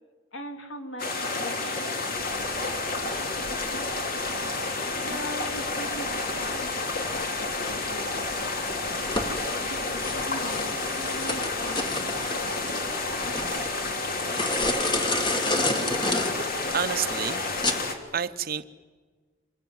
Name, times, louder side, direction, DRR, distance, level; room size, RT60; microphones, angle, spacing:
voice 1, 0.3-3.6 5.0-9.3 9.9-12.9, equal, 90° left, 5 dB, 3.0 m, -42 dB
sound 1, 1.0-18.0, left 3 dB, 50° left, 2.9 m, -30 dB
sound 2, 2.1-17.7, left 2 dB, 25° left, 1.9 m, -32 dB
voice 2, 16.7-18.6, right 7 dB, 50° right, 12 dB, 0.9 m, -30 dB
27.0 x 22.0 x 9.5 m, 1.4 s
head